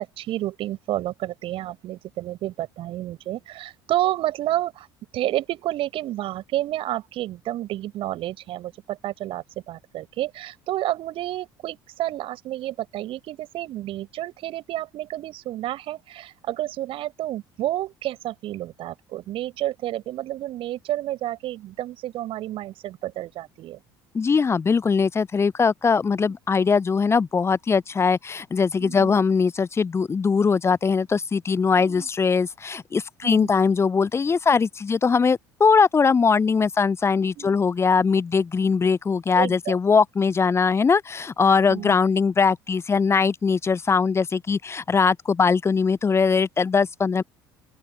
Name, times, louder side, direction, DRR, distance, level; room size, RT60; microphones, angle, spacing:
voice 1, 0.0-4.9 5.1-23.8 26.2-26.3 28.8-29.1 31.8-32.1 33.2-33.5 37.2-37.6 39.4-39.8 41.7-42.0, right 14 dB, 50° right, 5.9 m, -30 dB
voice 2, 24.1-47.2, left 5 dB, 20° left, 0.7 m, -21 dB
open air
figure-of-eight pair, 60°, 12 cm